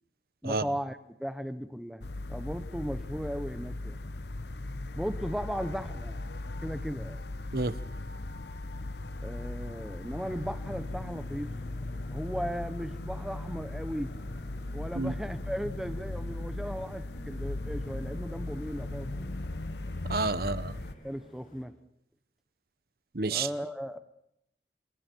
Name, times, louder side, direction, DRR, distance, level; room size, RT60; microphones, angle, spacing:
voice 1, 0.4-4.0 4.9-6.3 6.6-7.2 9.2-11.5 12.1-14.1 14.7-19.2 21.0-21.7 23.3-24.0, equal, ahead, 10 dB, 1.1 m, -36 dB
sound 1, 2.0-20.9, left 2 dB, 75° left, 0.9 m, -38 dB
sound 2, 10.1-21.6, equal, 45° left, 6.7 m, -52 dB
voice 2, 20.1-20.7 23.1-23.5, right 3 dB, 55° right, 16 dB, 0.9 m, -29 dB
28.0 x 28.0 x 4.7 m, 0.75 s
head